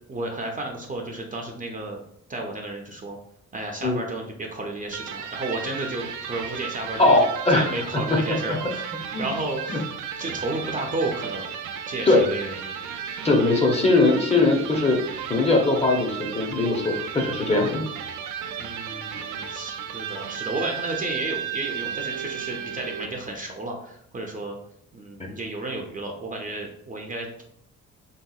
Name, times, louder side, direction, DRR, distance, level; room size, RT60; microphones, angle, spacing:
voice 1, 0.1-2.0 2.3-3.2 3.5-9.9 10.2-11.5 11.9-12.8 18.6-24.6 24.9-27.4, right 2 dB, 25° right, 1 dB, 0.5 m, -32 dB
Electric guitar, 4.9-23.3, right 8 dB, 80° right, 0.4 m, -34 dB
voice 2, 7.0-7.7 8.1-8.2 8.5-8.6 9.1-9.3 9.7-9.8 12.1-12.3 13.2-15.0 15.3-17.8 25.2-25.3, left 2 dB, 20° left, 1 dB, 0.7 m, -20 dB
3.4 x 2.8 x 2.3 m, 0.71 s
cardioid pair, 90°, 30 cm